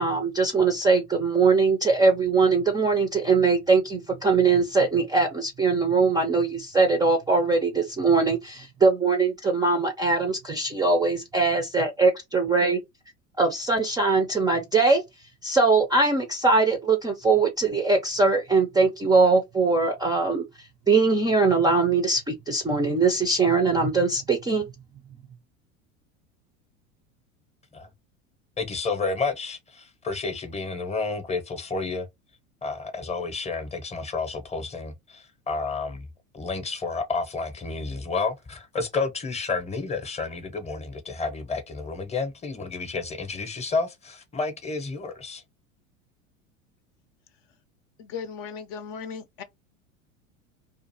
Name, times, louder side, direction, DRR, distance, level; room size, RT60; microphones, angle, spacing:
voice 1, 0.0-12.8 13.4-15.0 15.4-20.4 20.9-24.7, right 4 dB, 10° right, 0.4 m, -21 dB
voice 2, 28.6-32.1 32.6-36.1 36.3-45.4, left 4 dB, 15° left, 0.8 m, -30 dB
voice 3, 48.0-49.4, left 6 dB, 55° left, 0.6 m, -37 dB
2.5 x 2.4 x 2.7 m
hypercardioid pair, 85°, 40 cm